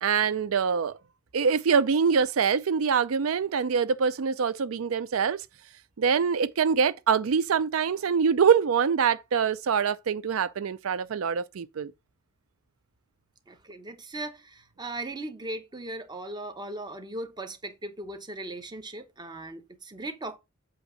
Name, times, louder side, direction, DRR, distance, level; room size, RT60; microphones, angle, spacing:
voice 1, 0.0-1.0 1.3-5.4 6.0-11.9, right 6 dB, 90° right, 0.4 m, -24 dB
voice 2, 13.5-20.4, right 2 dB, 20° right, 0.9 m, -38 dB
8.0 x 2.9 x 6.2 m
head